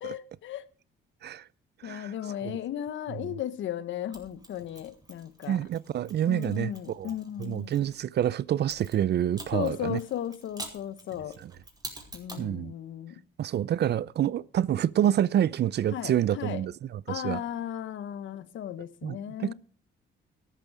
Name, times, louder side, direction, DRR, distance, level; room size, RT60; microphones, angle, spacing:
voice 1, 0.0-0.7 1.8-5.6 6.3-7.7 9.5-11.4 12.1-13.2 15.9-16.6 17.1-19.5, left 11 dB, 75° left, 1.3 m, -35 dB
Mechanisms, 4.1-8.0 8.7-12.5, right 2 dB, 20° right, 5.1 m, -46 dB
voice 2, 5.5-7.1 7.4-10.0 11.4-11.5 12.4-12.7 13.4-17.4 19.0-19.5, right 11 dB, 55° right, 0.6 m, -27 dB
13.0 x 12.5 x 5.0 m
cardioid pair, 90°, 20 cm